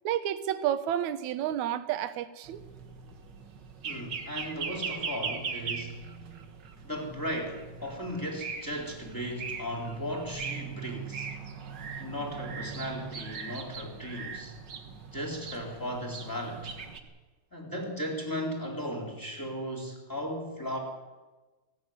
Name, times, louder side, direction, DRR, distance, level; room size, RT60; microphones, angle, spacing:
voice 1, 0.0-2.6, right 11 dB, 70° right, 12 dB, 2.2 m, -30 dB
sound 1, 2.4-17.0, right 5 dB, 45° right, 1.7 m, -40 dB
voice 2, 3.8-6.0 6.8-11.3 12.0-14.6 15.1-16.8 17.5-20.8, equal, 5° left, 0 dB, 3.6 m, -36 dB
19.0 x 16.0 x 9.4 m, 1.2 s
omnidirectional pair, 3.6 m